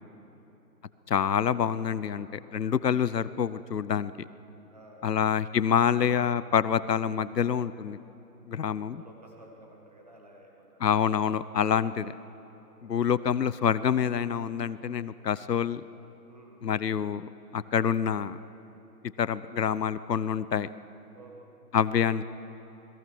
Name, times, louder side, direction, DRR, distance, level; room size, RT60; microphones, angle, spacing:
voice 1, 0.1-0.5 4.7-5.5 6.0-6.1 8.5-10.8 12.6-12.7 16.3-16.6 21.1-21.5 21.8-22.0, right 1 dB, 25° right, 1 dB, 1.6 m, -53 dB
voice 2, 1.1-4.1 5.0-8.0 8.5-9.0 10.8-12.1 12.8-15.8 16.6-18.4 19.2-20.7 21.7-22.2, left 8 dB, 70° left, 16 dB, 0.9 m, -27 dB
27.5 x 21.5 x 6.2 m, 3.0 s
hypercardioid pair, 180°, 50 cm